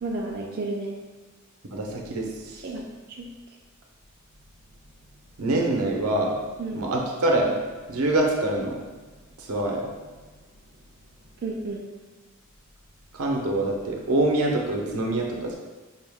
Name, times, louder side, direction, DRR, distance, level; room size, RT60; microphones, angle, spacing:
voice 1, 0.0-0.9 2.6-2.8 3.1-3.3 6.6-6.8 11.4-11.8, right 2 dB, 45° right, -2 dB, 0.4 m, -31 dB
voice 2, 1.7-2.6 5.4-6.4 6.7-7.6 7.9-8.8 9.4-9.9 13.1-15.5, right 1 dB, 85° right, 0 dB, 0.7 m, -25 dB
5.5 x 2.3 x 3.4 m, 1.3 s
head